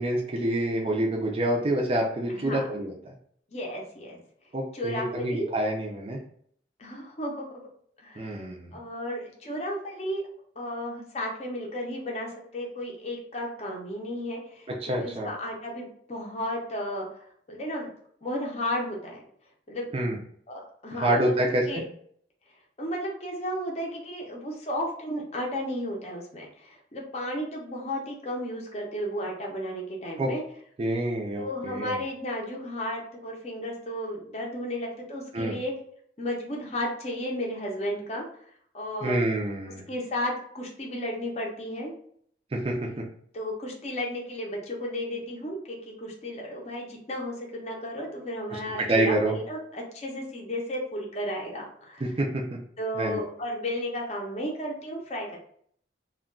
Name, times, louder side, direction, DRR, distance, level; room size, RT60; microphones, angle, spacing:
voice 1, 0.0-3.1 4.5-6.2 8.2-8.7 14.8-15.3 19.9-20.2 20.9-21.8 30.2-30.3 30.8-32.0 35.3-35.6 39.0-39.9 42.5-42.9 48.5-48.6 48.9-49.3 52.0-52.4 53.0-53.2, right 1 dB, 30° right, -1 dB, 0.4 m, -27 dB
voice 2, 3.5-4.2 4.7-5.5 6.8-7.5 8.0-8.4 8.7-10.2 10.6-17.9 18.2-19.2 19.7-19.9 20.5-21.8 22.8-30.4 31.3-35.7 36.2-38.3 38.7-39.2 39.9-41.9 43.3-52.0 52.8-55.4, equal, 35° left, -1 dB, 0.5 m, -33 dB
2.2 x 2.2 x 3.6 m, 0.62 s
head